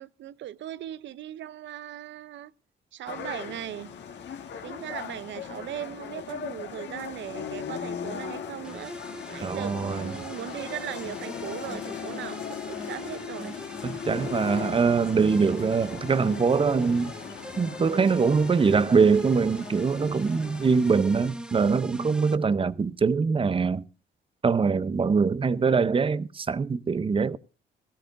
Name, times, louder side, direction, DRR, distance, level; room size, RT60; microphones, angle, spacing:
voice 1, 0.0-2.5 2.9-3.9 4.6-9.0 9.3-13.6 14.5-14.9, right 12 dB, 70° right, 0.6 m, -38 dB
sound 1, 3.1-21.3, left 7 dB, 65° left, 1.6 m, -39 dB
sound 2, 8.6-22.3, equal, 5° right, 1.1 m, -43 dB
voice 2, 9.4-10.1 13.8-17.1 17.6-23.8 24.4-27.4, right 5 dB, 25° right, 0.6 m, -23 dB
17.5 x 14.0 x 2.6 m
cardioid pair, 90°, 20 cm